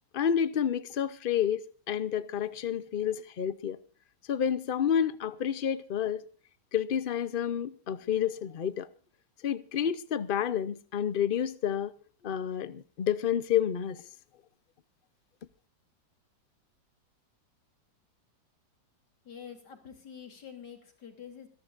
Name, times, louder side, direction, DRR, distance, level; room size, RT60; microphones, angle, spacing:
voice 1, 0.1-3.8 4.3-6.2 6.7-8.9 9.4-11.9 12.2-14.0, left 9 dB, 85° left, 0.4 m, -29 dB
voice 2, 19.3-21.5, left 8 dB, 60° left, 3.7 m, -47 dB
26.5 x 11.5 x 2.5 m
omnidirectional pair, 2.0 m